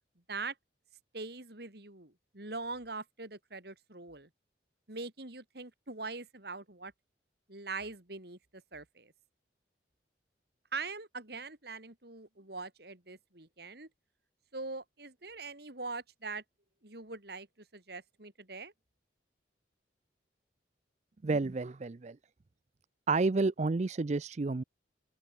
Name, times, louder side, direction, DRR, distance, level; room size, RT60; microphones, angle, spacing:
voice 1, 1.1-4.3 4.9-6.9 7.5-9.1 10.7-13.9 14.5-16.4 16.8-18.7, right 3 dB, 55° right, 3.1 m, -42 dB
voice 2, 21.2-22.2 23.1-24.6, right 3 dB, 40° right, 0.5 m, -30 dB
open air
head